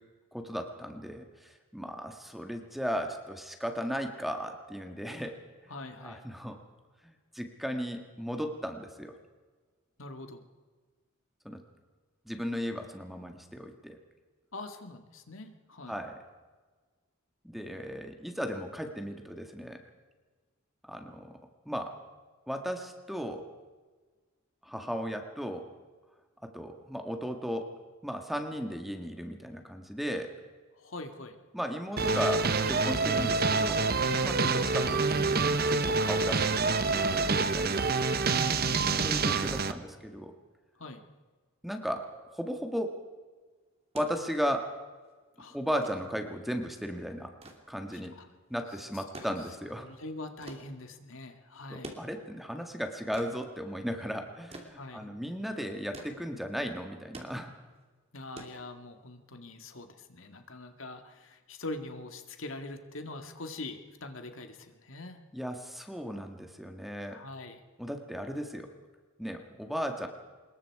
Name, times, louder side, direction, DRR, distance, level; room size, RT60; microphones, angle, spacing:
voice 1, 0.3-5.4 6.0-6.6 7.0-9.1 11.5-11.6 12.3-14.0 15.9-16.2 17.4-19.8 20.8-21.3 21.7-22.0 22.5-23.4 24.6-25.7 26.4-27.7 28.0-30.3 31.5-33.9 34.2-37.9 39.0-40.3 41.6-43.0 43.9-44.7 45.5-47.3 47.7-48.2 48.5-49.9 51.7-57.5 65.3-67.2 67.8-68.7 69.2-70.1, equal, ahead, 5 dB, 1.7 m, -36 dB
voice 2, 5.7-6.3 10.0-10.4 14.5-15.9 30.8-31.4 38.2-39.0 40.8-41.0 45.4-45.6 47.9-48.3 48.9-49.0 49.8-52.0 54.8-55.1 58.1-65.2 67.1-67.6, left 2 dB, 70° left, 6 dB, 2.1 m, -43 dB
sound 1, 32.0-39.7, right 4 dB, 50° right, 1.1 m, -27 dB
sound 2, 43.7-59.2 60.5-60.6, right 1 dB, 30° right, 2.9 m, -50 dB
25.5 x 21.5 x 4.8 m, 1.4 s
head